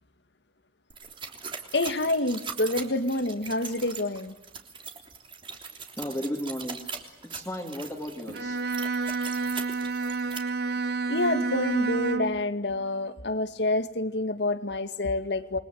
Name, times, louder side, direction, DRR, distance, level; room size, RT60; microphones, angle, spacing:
sound 1, 0.9-10.4, right 5 dB, 30° right, 3.4 m, -40 dB
voice 1, 1.7-4.3 11.1-15.6, left 2 dB, 75° left, 10 dB, 2.1 m, -27 dB
voice 2, 6.0-6.8 7.2-8.6, equal, 15° left, -1 dB, 3.0 m, -34 dB
Bowed string instrument, 8.3-12.5, right 4 dB, 60° right, 1.2 m, -29 dB
28.5 x 22.5 x 8.0 m, 0.88 s
head